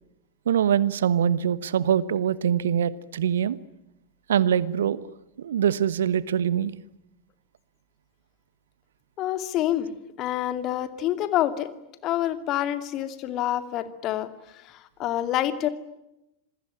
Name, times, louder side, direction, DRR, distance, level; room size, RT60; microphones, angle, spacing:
voice 1, 0.5-3.6 4.3-5.0 5.4-6.7, right 9 dB, 65° right, 18 dB, 1.1 m, -23 dB
voice 2, 9.2-9.9 10.2-11.7 12.0-15.7, left 12 dB, 35° left, 10 dB, 2.4 m, -27 dB
27.5 x 21.5 x 9.9 m, 0.88 s
figure-of-eight pair, 90°, 0 cm